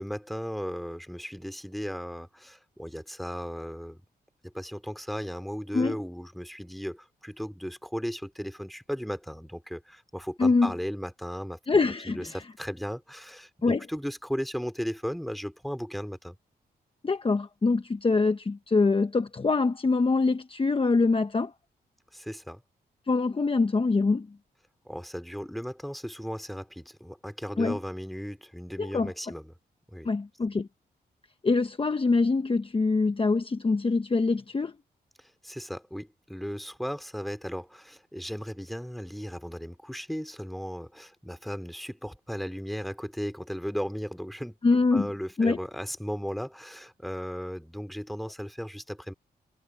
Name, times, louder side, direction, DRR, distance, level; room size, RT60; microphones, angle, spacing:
voice 1, 0.0-4.0 4.4-11.6 12.0-16.4 22.1-22.6 24.8-29.5 29.9-30.1 35.2-44.6 44.9-49.1, equal, ahead, 2.9 m, -36 dB
voice 2, 10.4-10.7 11.7-12.4 13.6-13.8 17.0-21.5 23.1-24.3 27.6-27.8 28.8-29.1 30.0-30.7 31.4-34.7 44.6-45.1 45.4-45.6, left 3 dB, 30° left, 1.2 m, -24 dB
cardioid pair, 75°, 17 cm